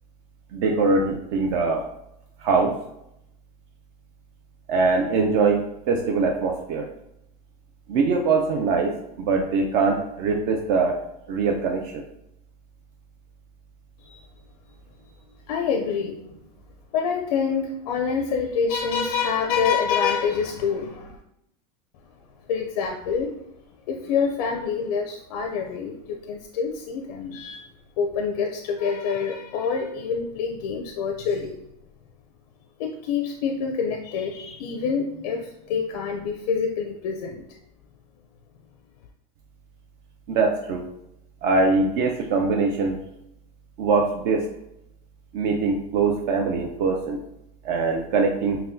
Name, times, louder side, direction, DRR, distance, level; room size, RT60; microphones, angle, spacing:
voice 1, 0.5-1.9 2.4-2.8 4.7-6.9 7.9-11.0 11.3-12.0 40.3-40.9 41.4-43.0 43.8-44.5 45.3-47.2 47.6-48.6, right 4 dB, 50° right, 1 dB, 0.5 m, -22 dB
voice 2, 15.5-16.2 16.9-21.2 22.5-23.3 23.9-27.7 28.0-31.6 32.8-37.4, left 6 dB, 85° left, 3 dB, 0.5 m, -26 dB
5.6 x 2.2 x 2.6 m, 0.81 s
supercardioid pair, 160°, 20 cm